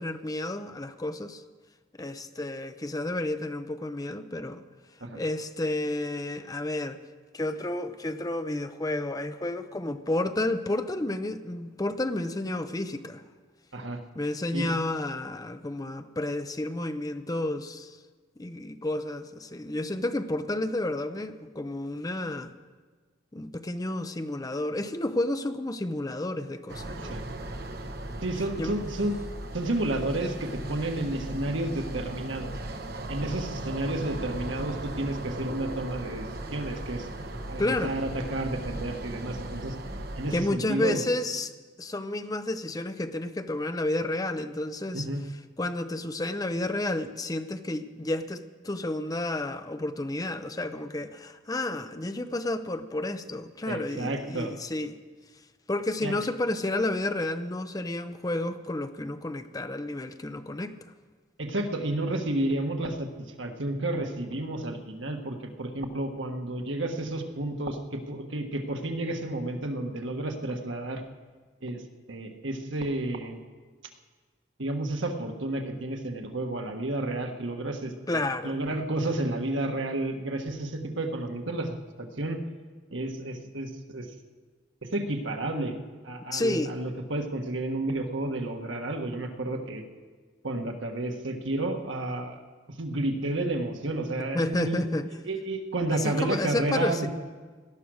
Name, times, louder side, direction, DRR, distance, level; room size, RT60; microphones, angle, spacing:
voice 1, 0.0-1.4 2.0-4.6 5.1-7.0 7.3-13.2 14.1-18.0 18.4-22.5 23.3-27.2 28.6-28.8 37.6-38.0 40.3-41.5 41.8-45.1 45.6-55.0 55.7-60.7 78.1-78.5 86.3-86.7 94.3-95.1 95.9-97.1, left 2 dB, 20° left, 9 dB, 0.6 m, -31 dB
sound 1, 26.7-40.4, right 1 dB, 55° right, 1.2 m, -37 dB
voice 2, 28.2-29.2 29.5-32.5 33.1-37.1 37.5-39.7 40.2-41.0 44.9-45.2 53.7-54.5 56.0-56.2 61.4-63.1 63.4-71.0 71.6-71.8 72.1-73.4 74.6-82.4 82.9-84.1 84.8-85.7 86.0-89.8 90.4-92.4 92.8-94.9 95.2-97.1, right 2 dB, 85° right, 4 dB, 1.5 m, -31 dB
18.0 x 12.0 x 6.3 m, 1.4 s
head